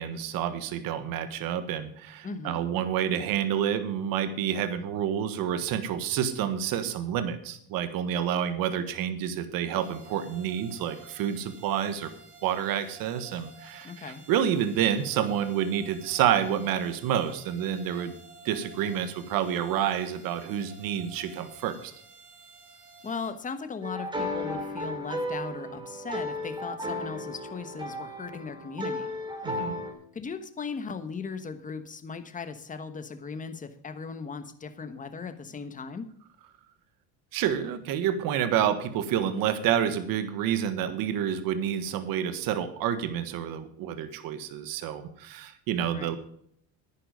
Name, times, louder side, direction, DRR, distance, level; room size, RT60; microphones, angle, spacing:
voice 1, 0.0-12.1 12.4-18.1 18.4-21.9 29.4-29.8 37.3-46.2, right 9 dB, 65° right, 10 dB, 1.6 m, -29 dB
voice 2, 2.2-2.6 13.8-14.2 23.0-29.1 30.1-36.1 45.9-46.2, left 5 dB, 20° left, 9 dB, 1.3 m, -38 dB
sound 1, 9.8-23.3, right 3 dB, 80° right, 5.1 m, -51 dB
sound 2, 23.8-29.9, left 1 dB, 10° right, 2.9 m, -34 dB
10.0 x 10.0 x 5.1 m, 0.65 s
supercardioid pair, 110°, 37 cm